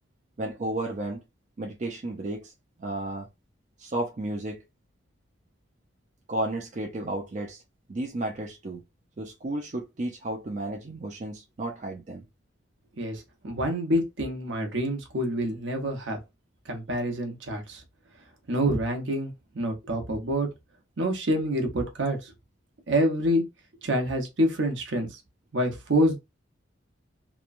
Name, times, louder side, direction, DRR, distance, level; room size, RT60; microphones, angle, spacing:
voice 1, 0.4-1.2 1.6-2.5 2.8-3.3 3.8-4.6 6.3-7.6 7.9-8.8 9.2-12.2, right 1 dB, 40° right, 0.4 m, -33 dB
voice 2, 13.0-16.2 16.7-17.8 18.5-20.5 21.0-22.3 22.9-23.4 23.8-25.2 25.5-26.2, equal, 70° right, 0.9 m, -27 dB
2.9 x 2.2 x 2.4 m
head